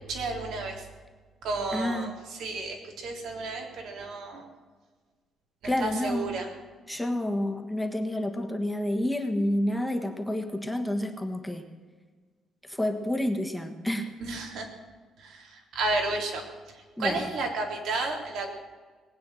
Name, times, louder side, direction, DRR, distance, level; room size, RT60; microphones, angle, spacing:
voice 1, 0.1-0.9 1.4-4.5 5.6-6.5 14.2-14.7 15.2-18.5, right 3 dB, 70° right, 2 dB, 3.6 m, -32 dB
voice 2, 1.7-2.1 5.6-6.3 6.9-11.7 12.6-14.1 17.0-17.3, left 1 dB, 5° left, 4 dB, 1.5 m, -29 dB
20.0 x 9.2 x 7.8 m, 1.5 s
cardioid pair, 150°, 0 cm